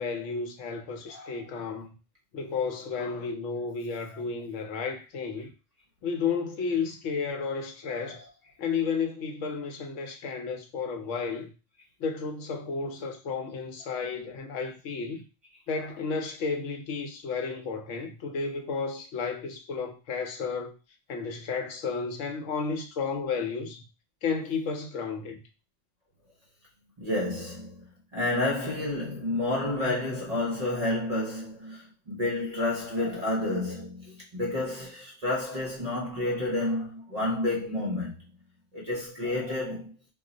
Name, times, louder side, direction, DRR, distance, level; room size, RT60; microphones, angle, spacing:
voice 1, 0.0-2.0 2.3-5.5 6.0-8.2 8.6-11.5 12.0-15.2 15.7-20.7 21.1-23.9 24.2-25.4, left 5 dB, 80° left, 0.9 m, -32 dB
voice 2, 1.1-1.5 7.9-8.3 15.7-16.0 17.5-17.6 27.0-27.8 28.1-38.1 38.7-39.9, left 2 dB, 40° right, 0.6 m, -30 dB
2.4 x 2.0 x 3.7 m
omnidirectional pair, 1.3 m